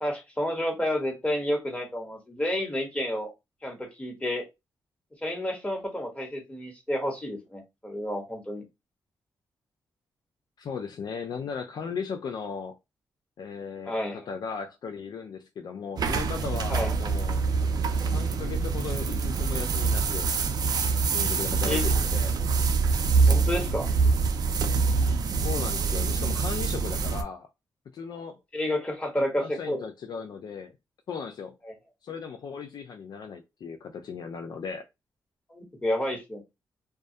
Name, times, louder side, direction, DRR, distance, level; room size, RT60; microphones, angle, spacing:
voice 1, 0.0-3.3 3.6-4.4 5.2-8.6 13.8-14.3 16.7-17.0 21.7-21.8 23.3-23.9 28.5-29.8 31.6-31.7 35.5-36.4, left 1 dB, 15° left, 1.1 m, -30 dB
voice 2, 10.6-12.8 13.4-17.4 18.0-20.3 21.1-22.3 25.4-27.5 27.9-28.4 29.4-30.7 31.1-31.6 32.0-34.8, left 6 dB, 65° left, 0.3 m, -37 dB
sound 1, 16.0-27.2, right 4 dB, 60° right, 0.4 m, -25 dB
2.2 x 2.1 x 2.6 m
cardioid pair, 75°, 8 cm